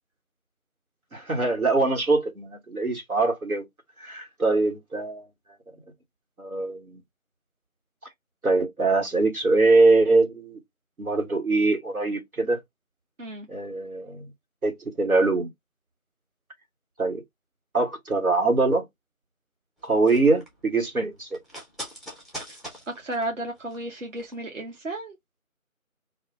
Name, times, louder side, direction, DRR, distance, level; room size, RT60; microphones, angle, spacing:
voice 1, 1.1-3.7 4.0-5.3 6.4-7.0 8.4-10.6 11.0-12.6 13.5-14.3 14.6-15.5 17.0-17.2 17.7-18.9 19.8-21.4, right 3 dB, 90° right, 1.4 m, -23 dB
sound 1, 19.8-24.4 24.7-24.8, equal, ahead, 0.6 m, -42 dB
voice 2, 22.9-25.1, right 1 dB, 60° right, 0.8 m, -33 dB
2.4 x 2.2 x 3.4 m
figure-of-eight pair, 170°, 42 cm